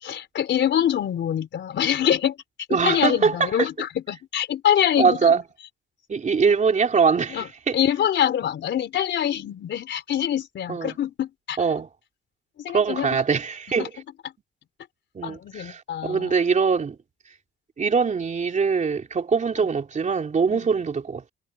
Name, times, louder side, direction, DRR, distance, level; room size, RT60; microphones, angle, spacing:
voice 1, 0.0-2.4 2.7-5.4 7.3-7.5 7.7-11.6 12.6-13.2 13.8-13.9 15.2-16.3 20.5-20.7, left 10 dB, 70° left, 4.0 m, -25 dB
voice 2, 2.7-3.7 5.0-5.4 6.1-7.8 10.7-11.0 11.6-11.9 12.7-13.9 15.2-17.0 17.8-21.3, right 5 dB, 40° right, 3.4 m, -22 dB
cardioid pair, 110°, 19 cm